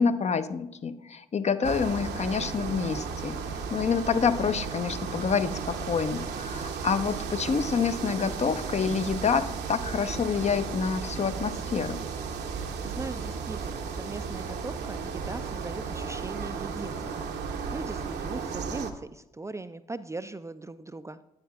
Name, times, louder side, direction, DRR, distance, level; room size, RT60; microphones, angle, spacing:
voice 1, 0.0-3.4 3.7-12.0, left 6 dB, 35° left, 11 dB, 0.5 m, -27 dB
sound 1, 1.6-18.9, right 5 dB, 65° right, 0.8 m, -34 dB
voice 2, 12.8-21.2, right 3 dB, 15° right, 11 dB, 0.4 m, -40 dB
9.8 x 9.2 x 2.3 m, 0.90 s
hypercardioid pair, 40°, 19 cm